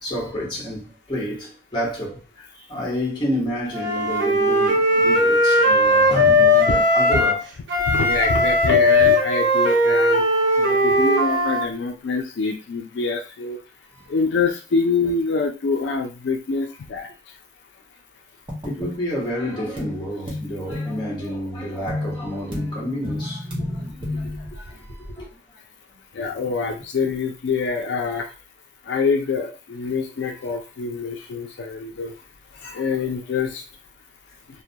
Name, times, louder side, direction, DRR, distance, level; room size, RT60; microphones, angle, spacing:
voice 1, 0.0-7.4 7.8-7.9 13.9-14.0 18.6-25.3, equal, 25° left, 0.9 m, -30 dB
Wind instrument woodwind instrument, 3.7-7.4 7.7-11.7, left 1 dB, 80° right, 0.7 m, -18 dB
voice 2, 7.9-10.2 10.6-13.6 14.1-17.1 26.1-28.3 28.9-32.1 32.5-33.6, left 4 dB, 85° left, 0.4 m, -25 dB
sound 1, 18.5-18.9 19.8-20.0 20.3-21.3 21.9-24.5, left 1 dB, 30° right, 0.8 m, -31 dB
2.2 x 2.1 x 2.7 m
head